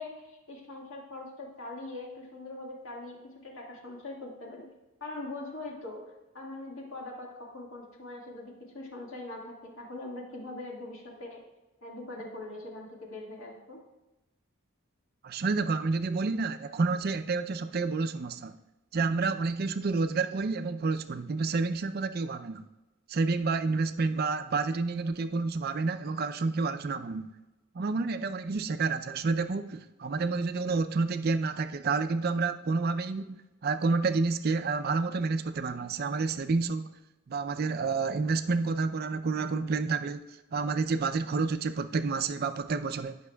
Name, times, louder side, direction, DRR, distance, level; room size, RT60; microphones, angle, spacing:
voice 1, 0.0-4.7 5.0-11.4 11.8-13.8, left 2 dB, 65° left, -1 dB, 1.8 m, -42 dB
voice 2, 15.2-18.6 18.9-22.6 23.1-27.3 27.7-36.9 37.3-43.2, right 4 dB, 45° right, 10 dB, 0.4 m, -29 dB
15.5 x 5.9 x 2.3 m, 1.1 s
head